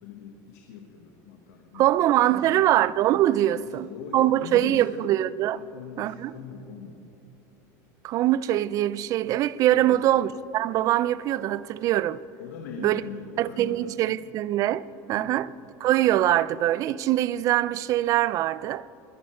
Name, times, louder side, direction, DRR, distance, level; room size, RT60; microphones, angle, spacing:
voice 1, 0.0-1.9 2.2-2.7 3.4-5.1 5.5-7.0 9.7-10.1 12.4-14.2 15.1-15.4, left 7 dB, 90° left, 1.3 m, -41 dB
voice 2, 1.7-3.9 4.1-5.6 6.0-6.3 8.0-12.2 12.8-13.0 13.4-15.5 15.8-18.9, right 13 dB, 40° right, 0.3 m, -23 dB
20.5 x 10.0 x 4.4 m
supercardioid pair, 145°, 9 cm